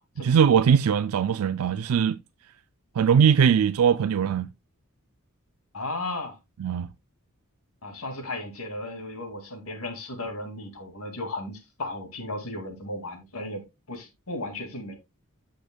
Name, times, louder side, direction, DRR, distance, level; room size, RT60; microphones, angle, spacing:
voice 1, 0.2-2.2 3.0-4.5 6.6-6.9, right 7 dB, 80° right, 0.4 m, -21 dB
voice 2, 5.7-6.4 7.8-15.0, left 2 dB, 80° left, 2.3 m, -35 dB
15.0 x 5.2 x 2.2 m
head